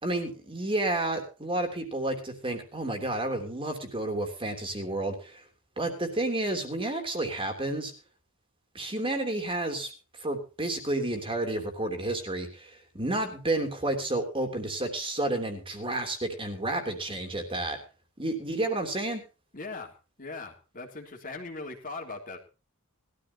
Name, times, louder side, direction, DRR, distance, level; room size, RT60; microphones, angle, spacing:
voice 1, 0.0-5.4 5.8-7.9 8.7-9.9 10.2-17.8 18.2-19.2, right 2 dB, 25° right, 5 dB, 3.2 m, -31 dB
voice 2, 19.5-19.9 20.2-22.4, left 3 dB, 40° left, 2 dB, 3.2 m, -39 dB
20.5 x 13.5 x 2.9 m, 0.33 s
head